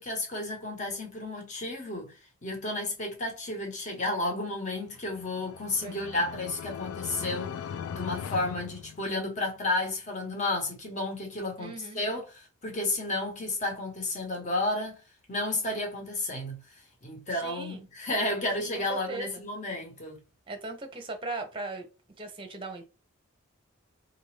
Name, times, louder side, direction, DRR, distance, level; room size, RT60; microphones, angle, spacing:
voice 1, 0.0-2.1 2.4-7.5 7.9-15.0 15.3-16.6 17.0-20.2, left 2 dB, 35° left, 1.1 m, -32 dB
sound 1, 5.0-9.5, left 7 dB, 80° left, 0.3 m, -39 dB
voice 2, 5.8-6.3 11.6-12.0 17.3-17.9 18.6-19.4 20.5-21.9 22.2-22.8, right 2 dB, 25° right, 0.7 m, -39 dB
3.9 x 2.6 x 3.2 m
head